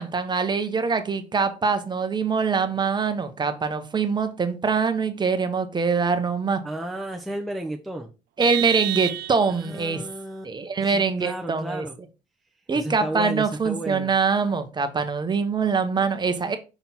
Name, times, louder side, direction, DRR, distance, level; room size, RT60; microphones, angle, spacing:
voice 1, 0.0-6.6 8.4-10.0 10.4-11.8 12.7-16.6, right 5 dB, 25° right, 0.9 m, -24 dB
voice 2, 6.6-8.1 9.5-10.5 10.8-12.0 12.8-14.1, right 1 dB, ahead, 0.7 m, -33 dB
Vehicle horn car horn honking, 8.4-9.8, right 17 dB, 75° right, 0.4 m, -29 dB
5.9 x 3.7 x 4.3 m
cardioid pair, 110°, 17 cm